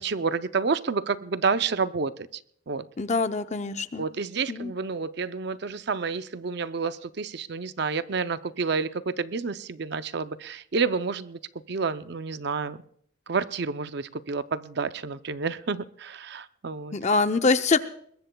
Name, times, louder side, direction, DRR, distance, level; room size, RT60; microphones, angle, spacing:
voice 1, 0.0-2.1 2.7-2.8 4.0-11.4 11.7-12.8 13.3-16.9, right 5 dB, 55° right, 12 dB, 0.5 m, -29 dB
voice 2, 3.0-4.0 4.5-4.7 16.9-17.8, left 3 dB, 35° left, 10 dB, 0.6 m, -24 dB
21.5 x 21.0 x 2.3 m, 0.65 s
head